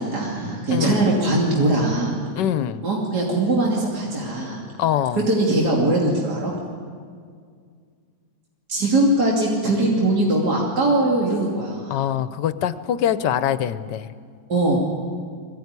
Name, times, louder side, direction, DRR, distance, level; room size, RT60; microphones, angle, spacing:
voice 1, 0.0-2.2 2.8-4.6 5.3-6.5 8.7-11.9 14.5-14.8, right 2 dB, 65° right, -3 dB, 3.3 m, -21 dB
voice 2, 0.7-1.0 2.4-2.9 4.8-5.2 11.9-14.1, left 10 dB, 80° left, 13 dB, 1.4 m, -23 dB
22.0 x 16.5 x 9.6 m, 2.1 s
omnidirectional pair, 1.9 m